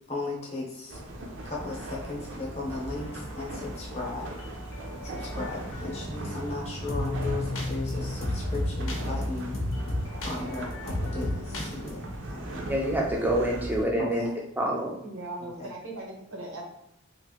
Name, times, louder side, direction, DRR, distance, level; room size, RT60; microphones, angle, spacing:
voice 1, 0.1-1.0 1.4-4.4 5.0-9.6 10.2-12.6 14.0-14.3 15.6-15.7, left 2 dB, 30° left, -4 dB, 0.8 m, -36 dB
sound 1, 0.9-13.9, right 1 dB, 60° right, 0.5 m, -38 dB
sound 2, 3.0-11.9, left 1 dB, 85° left, 0.7 m, -34 dB
voice 2, 12.7-14.3 14.6-15.0, right 1 dB, 10° right, -1 dB, 0.4 m, -26 dB
voice 3, 15.0-16.6, right 2 dB, 85° right, -1 dB, 0.8 m, -39 dB
3.0 x 2.5 x 2.8 m, 0.78 s
head